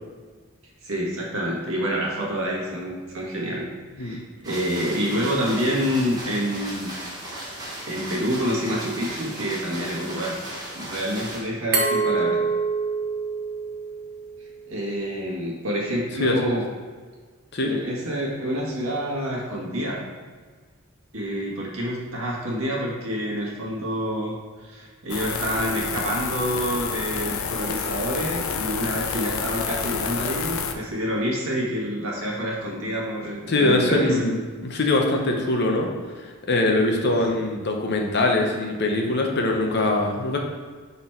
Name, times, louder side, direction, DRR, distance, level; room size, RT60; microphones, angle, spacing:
voice 1, 0.8-3.7 4.0-6.9 7.9-10.4 10.8-12.4 14.7-16.6 17.6-20.0 21.1-34.2, equal, 80° right, -3 dB, 1.6 m, -27 dB
sound 1, 4.4-11.4, right 1 dB, 20° right, 1.2 m, -36 dB
Glass, 11.7-14.5, right 4 dB, 45° right, 0.9 m, -25 dB
voice 2, 16.2-16.6 17.5-17.7 33.5-35.9 36.2-40.4, left 2 dB, 50° left, 2 dB, 0.8 m, -22 dB
sound 2, 25.1-30.7, left 6 dB, 75° left, 0.5 m, -29 dB
6.0 x 4.1 x 4.4 m, 1.5 s
head